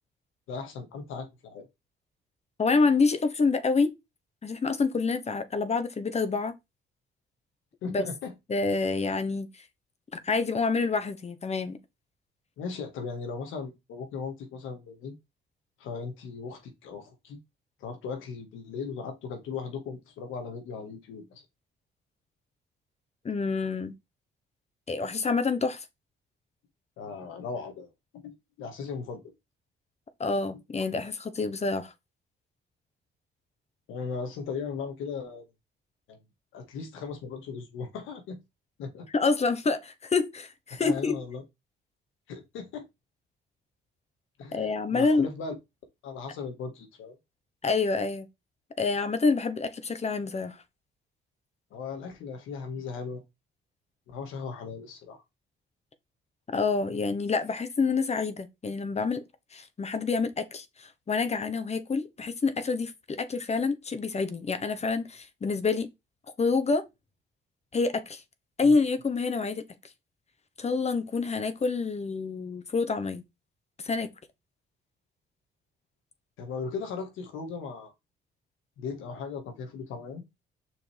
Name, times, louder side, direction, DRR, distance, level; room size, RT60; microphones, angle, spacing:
voice 1, 0.5-1.7 7.8-8.3 12.6-15.2 15.8-17.4 17.8-21.4 27.0-27.9 28.2-29.2 33.9-35.4 36.1-36.2 36.5-38.4 38.8-39.1 40.8-41.4 42.3-42.9 44.4-45.5 46.0-47.2 51.7-53.2 54.1-55.2 68.6-68.8 76.4-77.9 78.8-80.2, left 5 dB, 90° left, 1.9 m, -37 dB
voice 2, 2.6-3.9 4.4-6.5 7.9-8.0 8.5-9.5 10.1-11.8 23.2-24.0 24.9-25.9 30.2-31.9 39.1-41.2 44.5-45.3 47.6-48.3 48.8-50.6 56.5-59.2 59.5-65.9 66.4-66.9 67.7-68.2 68.6-69.7 70.6-73.2 73.8-74.1, left 4 dB, 35° left, 1.2 m, -27 dB
6.4 x 5.2 x 3.5 m
cardioid pair, 90°, 20 cm